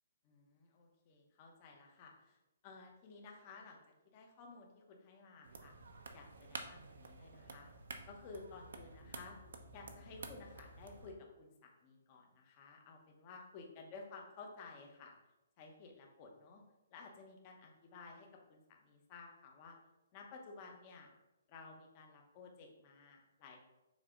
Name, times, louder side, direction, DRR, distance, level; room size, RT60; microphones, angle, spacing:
voice 1, 0.2-3.8 4.0-5.7 6.1-7.7 8.1-9.4 9.7-15.1 15.6-16.6 16.9-19.8 20.1-21.1 21.5-23.6, left 4 dB, 20° left, 1 dB, 0.8 m, -55 dB
sound 1, 5.4-11.1, right 3 dB, 75° right, 0.8 m, -51 dB
7.2 x 2.8 x 4.9 m, 0.96 s
hypercardioid pair, 180°, 0 cm